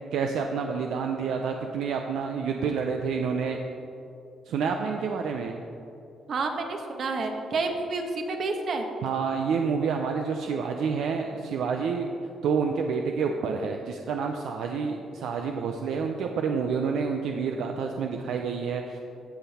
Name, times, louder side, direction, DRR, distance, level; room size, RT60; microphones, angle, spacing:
voice 1, 0.1-3.6 4.5-5.6 9.0-12.1 12.4-19.0, right 5 dB, 80° right, 3 dB, 0.6 m, -28 dB
voice 2, 6.3-8.9, right 3 dB, 55° right, 4 dB, 1.2 m, -29 dB
15.0 x 5.8 x 4.2 m, 2.7 s
cardioid pair, 90°, 0 cm